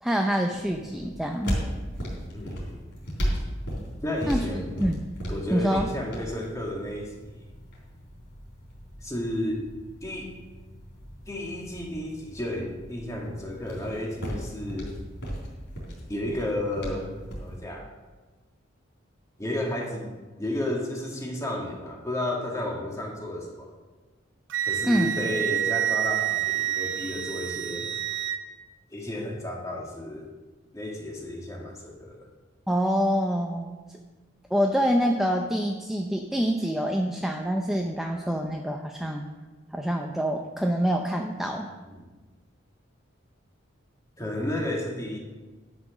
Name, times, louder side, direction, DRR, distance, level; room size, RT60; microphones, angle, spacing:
voice 1, 0.0-1.6 4.3-4.5 4.8-5.0 5.5-5.9 24.8-25.2 32.7-33.8 34.5-39.3 39.7-41.7, equal, ahead, 2 dB, 0.5 m, -26 dB
sound 1, 0.5-17.6, equal, 60° left, 3.8 m, -36 dB
voice 2, 2.3-2.9 4.0-4.8 5.3-7.3 9.0-9.6 10.0-10.3 11.3-14.9 16.1-17.1 17.4-17.9 19.4-20.1 20.4-23.7 24.7-27.9 28.9-30.3 30.7-32.3 41.4-41.5 41.8-42.1 44.2-45.2, left 1 dB, 15° left, -1 dB, 1.9 m, -32 dB
Wind instrument woodwind instrument, 24.5-28.4, right 11 dB, 70° right, 0.6 m, -28 dB
11.5 x 6.1 x 6.1 m, 1.3 s
head